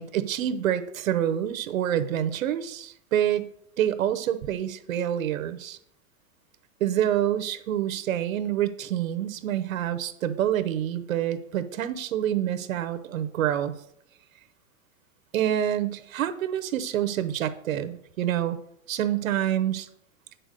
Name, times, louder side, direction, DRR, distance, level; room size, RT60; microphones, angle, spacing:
voice 1, 0.0-3.5 3.8-5.8 6.8-13.7 15.3-18.6 18.9-19.9, right 11 dB, 80° right, 12 dB, 0.9 m, -27 dB
9.1 x 4.5 x 6.5 m, 0.72 s
supercardioid pair, 180°, 40 cm